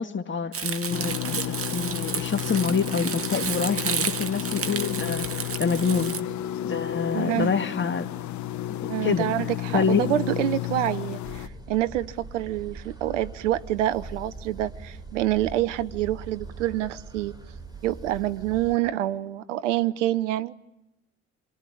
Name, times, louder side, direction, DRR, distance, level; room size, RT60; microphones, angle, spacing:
voice 1, 0.0-1.4 1.7-6.2 6.6-8.1 8.8-9.3 9.7-10.0, left 5 dB, 30° left, 2.1 m, -26 dB
Crumpling crinkling, 0.5-6.2, right 6 dB, 40° right, 1.9 m, -32 dB
sound 1, 0.9-11.5, left 12 dB, 50° left, 1.0 m, -32 dB
voice 2, 7.1-7.5 8.9-17.3 17.8-20.5, right 13 dB, 80° right, 0.9 m, -27 dB
sound 2, 11.2-18.8, right 3 dB, 10° right, 4.9 m, -42 dB
27.5 x 22.5 x 8.6 m
hypercardioid pair, 60°, 36 cm